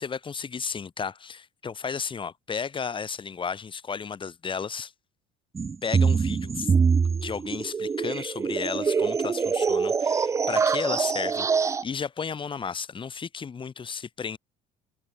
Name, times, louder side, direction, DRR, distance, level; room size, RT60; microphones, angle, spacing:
voice 1, 0.0-4.9 5.8-6.7 7.1-14.4, left 6 dB, 30° left, 3.3 m, -33 dB
sound 1, 5.6-11.8, right 5 dB, 15° right, 0.4 m, -24 dB
cardioid pair, 115°, 17 cm